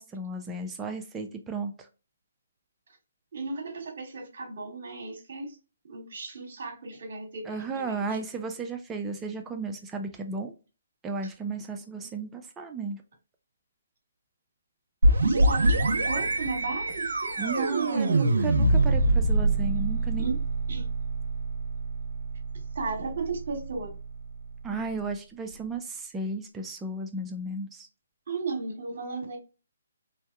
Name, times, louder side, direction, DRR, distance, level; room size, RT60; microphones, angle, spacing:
voice 1, 0.0-1.9 7.5-10.5 11.0-13.0 17.4-20.4 24.6-27.9, right 3 dB, 10° right, 0.5 m, -34 dB
voice 2, 3.3-5.6 5.8-8.2 15.2-18.2 20.2-20.4 20.7-20.9 22.7-23.9 28.3-29.4, right 4 dB, 60° right, 1.1 m, -35 dB
sound 1, 15.0-24.6, right 2 dB, 75° right, 0.6 m, -25 dB
3.4 x 2.7 x 2.2 m
hypercardioid pair, 145°, 0 cm